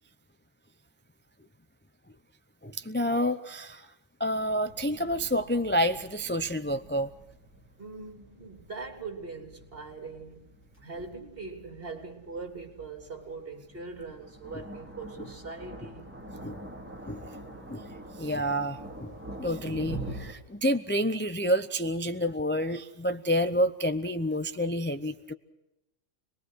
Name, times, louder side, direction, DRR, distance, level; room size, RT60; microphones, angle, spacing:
voice 1, 2.6-3.9 4.2-7.1 16.4-16.6 17.1-17.2 17.7-17.8 18.2-19.1 19.4-25.3, equal, 10° left, 0.6 m, -29 dB
sound 1, 4.3-20.3, right 1 dB, 10° right, 3.2 m, -45 dB
voice 2, 7.8-10.5 10.8-16.1, right 4 dB, 50° right, 3.5 m, -41 dB
26.5 x 21.0 x 6.4 m
omnidirectional pair, 1.3 m